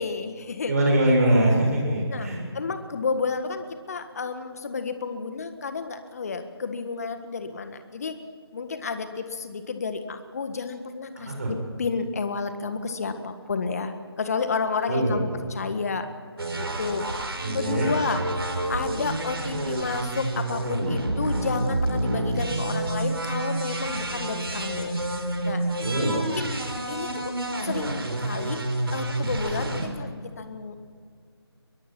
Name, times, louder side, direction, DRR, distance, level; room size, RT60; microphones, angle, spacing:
voice 1, 0.0-0.7 2.1-8.2 8.5-16.1 16.5-17.0 17.5-18.2 18.7-24.9 25.4-25.6 26.0-26.5 26.9-27.3 27.6-28.6 28.9-30.8, left 4 dB, 35° left, 9 dB, 1.7 m, -31 dB
voice 2, 0.6-2.4 11.2-11.5 14.9-15.2 17.4-17.9 25.8-26.2, right 1 dB, 40° right, 0 dB, 7.2 m, -23 dB
sound 1, 16.4-29.9, right 1 dB, 65° right, 4.2 m, -29 dB
23.0 x 22.0 x 6.1 m, 2.2 s
figure-of-eight pair, 160°, 14 cm